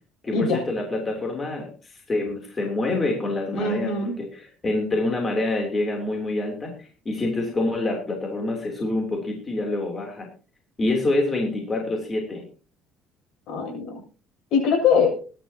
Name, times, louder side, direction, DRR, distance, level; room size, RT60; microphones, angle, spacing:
voice 1, 0.2-10.3 10.8-12.4, left 2 dB, 20° left, 1 dB, 3.2 m, -26 dB
voice 2, 3.5-4.2 13.5-14.0 14.5-15.2, left 5 dB, 65° left, 1 dB, 7.6 m, -22 dB
21.5 x 11.0 x 2.9 m, 0.37 s
cardioid pair, 150°, 0 cm